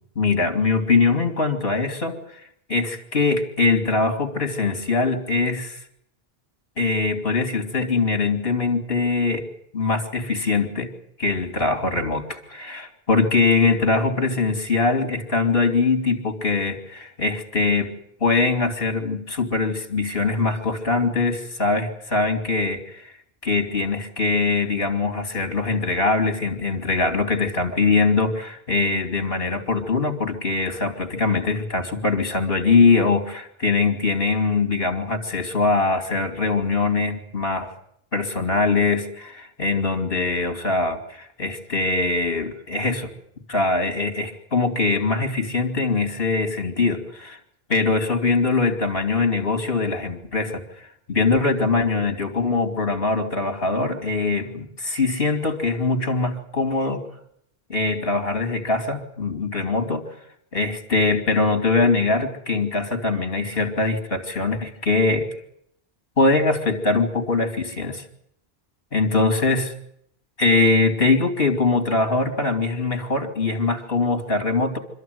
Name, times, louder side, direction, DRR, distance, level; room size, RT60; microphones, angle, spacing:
voice 1, 0.1-2.4 2.7-5.8 6.8-9.5 9.7-10.9 11.2-18.0 18.2-23.1 23.4-37.7 38.1-43.1 43.5-47.4 47.7-57.0 57.7-60.1 60.5-65.3 66.2-68.0 68.9-69.7 70.4-74.8, left 3 dB, 65° left, 7 dB, 3.0 m, -22 dB
25.5 x 13.5 x 9.4 m, 0.72 s
omnidirectional pair, 1.1 m